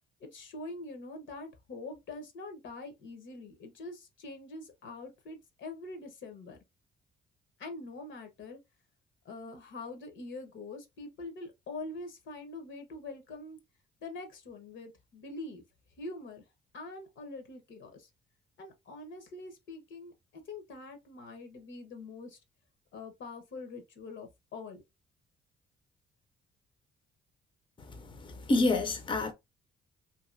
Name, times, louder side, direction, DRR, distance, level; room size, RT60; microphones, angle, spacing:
voice 1, 0.2-6.6 7.6-8.6 9.2-13.6 14.0-15.6 16.0-16.4 16.7-18.1 18.6-20.1 20.5-22.4 22.9-24.8, left 2 dB, 70° left, 1.0 m, -44 dB
voice 2, 27.8-29.3, left 2 dB, 25° left, 0.6 m, -29 dB
2.8 x 2.6 x 2.5 m
cardioid pair, 90°, 20 cm